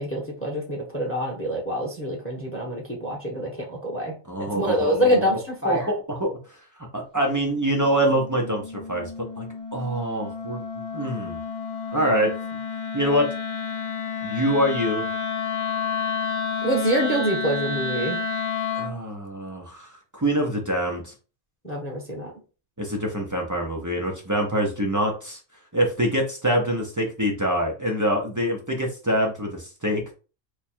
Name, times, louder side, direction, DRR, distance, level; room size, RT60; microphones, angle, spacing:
voice 1, 0.0-4.2 4.5-5.9 16.6-18.2 21.6-22.3, right 1 dB, 10° left, -1 dB, 0.8 m, -26 dB
voice 2, 4.3-5.2 5.6-6.3 6.9-9.1 9.4-9.5 9.7-11.4 11.9-12.3 12.9-13.3 14.2-15.0 18.7-21.1 22.8-25.4 25.7-30.1, equal, 25° right, 0 dB, 0.4 m, -25 dB
Wind instrument woodwind instrument, 7.5-19.0, left 5 dB, 60° left, 0.4 m, -30 dB
3.1 x 2.3 x 4.2 m, 0.35 s
omnidirectional pair, 1.4 m